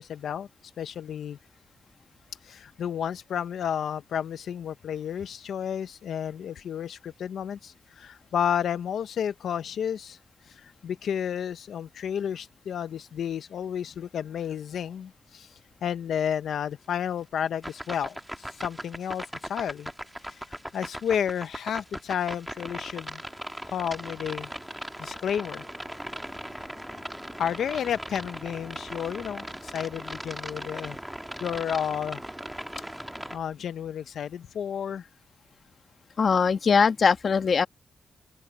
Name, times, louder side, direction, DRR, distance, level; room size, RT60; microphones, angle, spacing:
voice 1, 0.0-1.4 2.4-10.2 10.4-19.9 20.2-23.2 23.6-25.7 26.6-31.0 31.4-32.2 33.3-35.1, left 8 dB, 80° left, 0.7 m, -32 dB
sound 1, 17.6-33.4, right 1 dB, 5° right, 1.5 m, -39 dB
voice 2, 36.2-37.7, left 5 dB, 55° left, 1.2 m, -21 dB
open air
cardioid pair, 85°, 0 cm